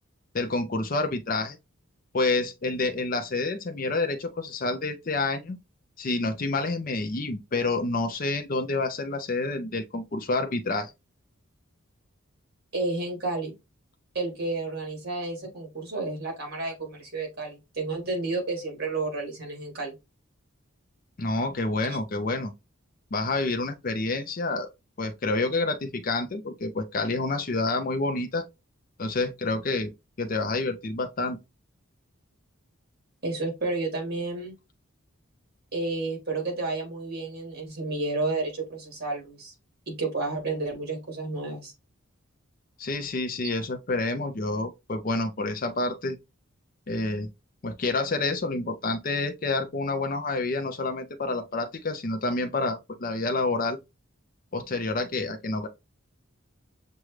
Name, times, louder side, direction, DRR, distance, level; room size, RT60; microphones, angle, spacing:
voice 1, 0.3-1.6 2.1-5.6 6.0-10.9 21.2-22.5 23.1-24.7 25.0-28.4 29.0-29.9 30.2-31.4 42.8-46.2 46.9-47.3 47.6-53.8 54.5-55.7, left 3 dB, 40° left, 0.5 m, -28 dB
voice 2, 12.7-13.5 14.1-19.9 21.8-22.0 33.2-34.5 35.7-39.5 39.9-41.7, right 3 dB, 45° right, 2.2 m, -31 dB
6.2 x 2.3 x 3.2 m
head